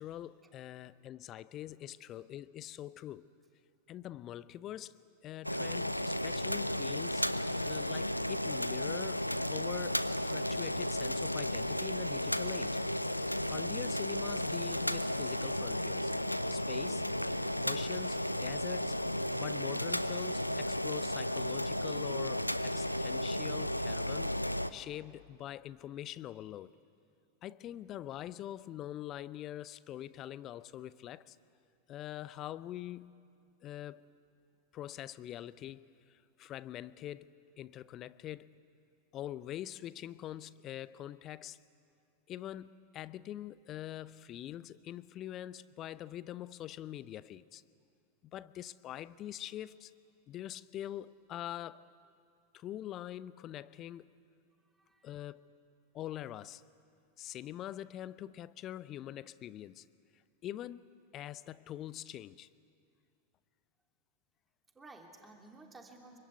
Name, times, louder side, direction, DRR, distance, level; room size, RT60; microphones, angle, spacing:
voice 1, 0.0-3.3 3.9-5.0 5.2-7.3 7.6-12.8 13.2-16.1 16.5-17.0 17.6-19.0 19.3-24.4 24.7-26.7 27.4-31.4 31.9-33.1 33.6-34.0 34.7-37.3 37.6-38.5 39.1-41.6 42.3-47.6 48.3-49.9 50.3-51.9 52.5-54.1 55.0-55.4 55.9-56.6 57.2-59.9 60.1-62.5, left 12 dB, 35° left, 0.7 m, -44 dB
Boiling, 5.4-24.7, left 1 dB, 90° left, 0.7 m, -34 dB
voice 2, 54.6-55.1 57.7-57.8 64.7-66.2, right 2 dB, 15° right, 3.0 m, -56 dB
25.5 x 24.5 x 9.4 m
figure-of-eight pair, 90°, 0 cm